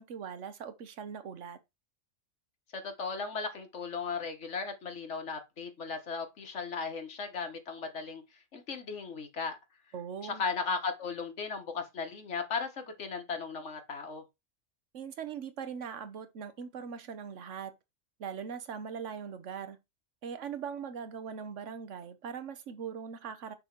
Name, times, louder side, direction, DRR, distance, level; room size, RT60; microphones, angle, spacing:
voice 1, 0.0-1.6 9.9-10.4 14.9-17.8 18.2-19.8 20.2-23.5, right 7 dB, 85° right, 1.2 m, -40 dB
voice 2, 2.7-8.2 8.5-9.6 10.2-14.2, left 5 dB, 75° left, 1.6 m, -36 dB
6.4 x 3.1 x 5.9 m
omnidirectional pair, 1.2 m